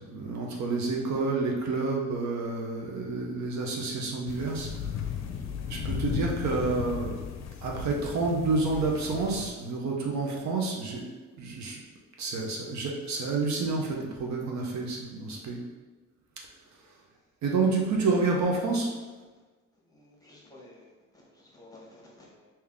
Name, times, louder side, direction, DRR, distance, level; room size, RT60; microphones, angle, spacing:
voice 1, 0.1-4.7 5.7-7.1 7.6-11.0 11.4-11.8 12.2-15.6 17.4-18.9, right 3 dB, 65° right, 0 dB, 0.8 m, -29 dB
sound 1, 4.3-9.5, left 7 dB, 60° left, 0.5 m, -35 dB
voice 2, 18.9-19.2 19.9-22.5, left 2 dB, 10° left, -4 dB, 1.2 m, -54 dB
3.4 x 2.9 x 3.6 m, 1.3 s
cardioid pair, 90°, 30 cm